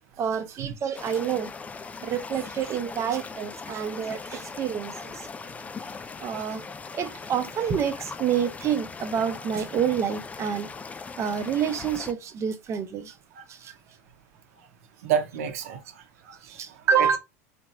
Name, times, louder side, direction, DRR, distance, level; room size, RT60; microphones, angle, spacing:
voice 1, 0.2-1.5 2.0-5.3 6.2-6.6 6.9-10.7 11.2-13.1 13.5-13.7 16.5-17.2, right 8 dB, 40° right, 0.8 m, -28 dB
sound 1, 0.9-12.1, left 4 dB, 20° left, 0.4 m, -40 dB
voice 2, 15.0-17.2, right 8 dB, 75° right, 0.9 m, -30 dB
4.4 x 3.0 x 2.5 m
hypercardioid pair, 95°, 8 cm